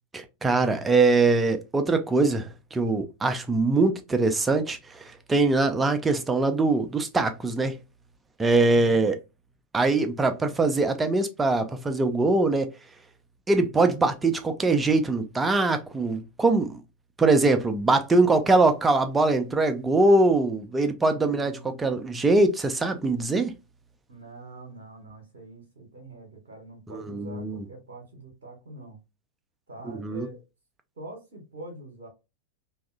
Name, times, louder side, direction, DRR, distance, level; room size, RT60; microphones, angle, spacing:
voice 1, 0.1-7.8 8.4-9.2 9.7-12.7 13.5-16.8 17.2-23.5 26.9-27.6 29.9-30.3, right 3 dB, 15° right, 0.4 m, -22 dB
voice 2, 21.1-21.8 24.1-29.0 29.7-30.4 31.0-32.1, right 2 dB, 65° right, 0.8 m, -44 dB
2.7 x 2.4 x 2.3 m
figure-of-eight pair, 90°, 0 cm